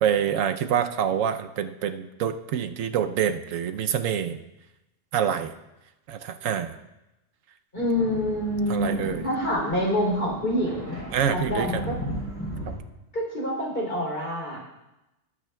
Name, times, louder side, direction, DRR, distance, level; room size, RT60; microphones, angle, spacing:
voice 1, 0.0-4.4 5.1-5.5 6.1-6.8 8.7-9.3 11.1-11.8 12.7-12.8, right 8 dB, 85° right, 9 dB, 1.0 m, -26 dB
voice 2, 7.7-11.0 11.3-12.0 13.1-14.6, left 1 dB, 45° left, -2 dB, 3.4 m, -27 dB
sound 1, 7.8-12.8, equal, 10° left, 3.5 m, -36 dB
19.0 x 8.9 x 2.2 m, 0.95 s
omnidirectional pair, 1.4 m